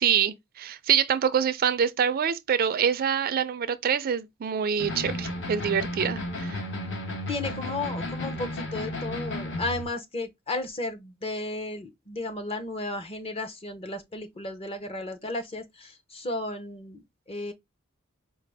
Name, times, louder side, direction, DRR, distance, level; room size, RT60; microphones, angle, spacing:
voice 1, 0.0-6.6, right 8 dB, 45° right, 0.4 m, -25 dB
heavy guitar riff, 4.8-9.9, left 1 dB, 60° left, 1.0 m, -33 dB
voice 2, 7.3-17.0 17.3-17.5, left 2 dB, 30° left, 0.7 m, -34 dB
4.8 x 2.0 x 3.3 m
head